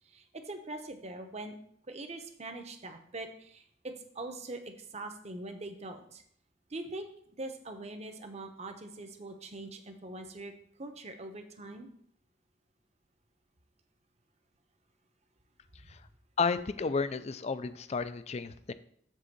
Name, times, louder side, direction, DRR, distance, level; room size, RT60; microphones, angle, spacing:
voice 1, 0.0-1.6 1.9-6.2 6.7-7.1 7.4-10.5 10.8-11.9, right 2 dB, 35° right, 6 dB, 0.9 m, -42 dB
voice 2, 16.4-18.7, left 4 dB, 35° left, 13 dB, 0.4 m, -32 dB
7.5 x 3.8 x 6.7 m, 0.65 s
head